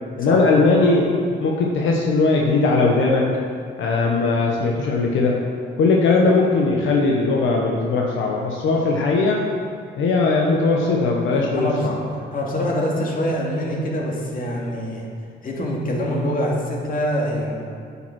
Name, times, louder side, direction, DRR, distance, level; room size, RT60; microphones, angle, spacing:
voice 1, 0.2-1.1 1.4-3.3 3.8-5.3 5.8-9.4 10.0-12.0, left 3 dB, 80° left, -1 dB, 1.1 m, -19 dB
voice 2, 12.3-15.0 15.4-17.7, equal, 45° left, -3 dB, 2.5 m, -24 dB
9.1 x 7.0 x 6.1 m, 2.4 s
cardioid pair, 90°, 20 cm